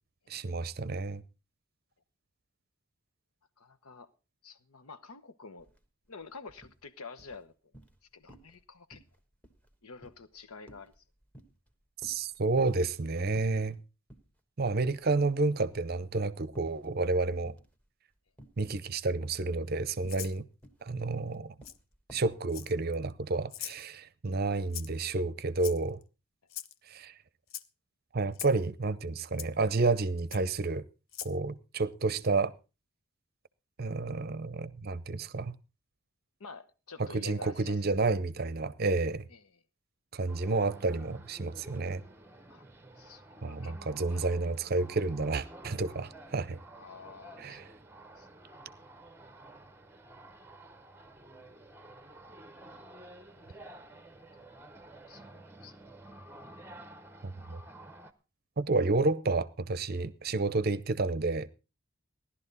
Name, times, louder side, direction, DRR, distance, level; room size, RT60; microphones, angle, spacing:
voice 1, 0.3-1.2 12.0-13.8 14.6-17.5 18.6-20.5 20.8-21.5 22.1-26.0 26.9-27.1 28.1-30.8 31.2-32.5 33.8-35.6 37.0-39.3 40.1-42.0 43.4-46.6 47.4-47.7 57.2-57.6 58.6-61.5, right 3 dB, 45° right, 0.6 m, -30 dB
voice 2, 3.6-4.1 4.4-5.7 6.1-7.7 8.1-9.0 9.8-10.9 36.4-38.0 39.3-39.5 42.5-42.7 43.0-44.3 46.7-47.6 48.2-48.3 53.3-53.6 54.3-54.4 55.1-55.8, left 4 dB, 80° left, 1.0 m, -49 dB
sound 1, 5.6-5.8 6.1-6.8 7.2-8.0 8.3-8.6 8.9-11.7 12.0-13.0 13.4-13.8 14.1-14.3 14.7-15.3 15.6-16.9 17.4-17.9 18.4-18.8 19.2-22.4, right 1 dB, 5° left, 1.2 m, -55 dB
Rattle (instrument), 20.1-20.4 21.6-21.8 22.5-22.9 23.5-23.8 24.7-25.0 25.6-26.0 26.5-26.7 27.5-27.7 28.3-28.6 29.4-29.5 30.3-30.4 31.1-31.3, left 11 dB, 65° left, 0.6 m, -41 dB
sound 2, 40.3-58.1, right 1 dB, 10° right, 0.8 m, -51 dB
16.5 x 11.5 x 4.0 m
head